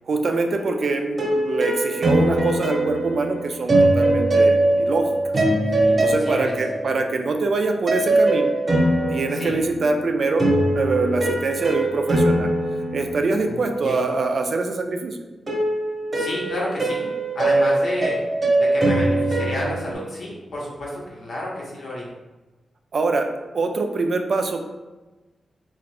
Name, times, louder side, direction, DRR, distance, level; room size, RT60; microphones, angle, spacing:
voice 1, 0.1-5.3 6.0-8.6 9.1-10.5 10.7-12.5 12.9-15.2 22.9-23.3 23.5-24.6, right 3 dB, 55° right, 5 dB, 0.3 m, -24 dB
sound 1, 0.5-7.1 7.9-13.8 15.5-19.9, right 1 dB, 30° right, 0.9 m, -22 dB
voice 2, 5.8-6.5 9.3-9.5 13.5-14.0 16.1-18.2 18.6-22.1, left 1 dB, 65° left, -5 dB, 1.0 m, -30 dB
3.7 x 2.4 x 3.3 m, 1.2 s
wide cardioid pair, 130°, 0 cm